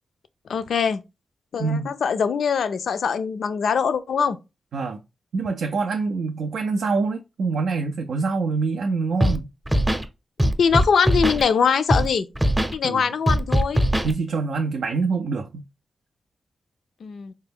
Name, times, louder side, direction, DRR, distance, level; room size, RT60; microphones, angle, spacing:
voice 1, 0.5-1.0 1.5-4.4 10.6-12.3 12.7-13.8 17.0-17.3, left 6 dB, 75° left, 0.3 m, -22 dB
voice 2, 1.6-1.9 4.7-5.0 5.3-9.5 12.8-13.0 14.0-15.6, right 4 dB, 80° right, 0.3 m, -25 dB
Scratching (performance technique), 9.2-9.4 9.6-10.0 10.4-11.4 11.9-12.1 12.3-12.7 13.3-14.1, equal, 10° right, 0.6 m, -20 dB
3.4 x 2.1 x 3.4 m
cardioid pair, 50°, 0 cm